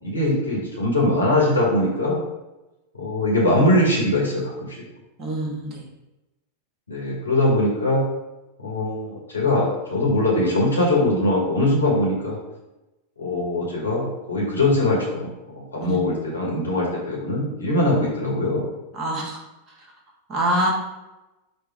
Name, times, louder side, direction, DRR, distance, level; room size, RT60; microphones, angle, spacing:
voice 1, 0.0-2.2 2.9-4.8 6.9-8.1 8.6-12.4 13.2-18.7, left 1 dB, 80° left, -4 dB, 1.5 m, -22 dB
voice 2, 5.2-5.8 15.8-16.0 18.9-19.4 20.3-20.7, right 1 dB, 30° right, -1 dB, 1.1 m, -25 dB
4.6 x 2.4 x 4.6 m, 1.0 s
figure-of-eight pair, 90°, 0 cm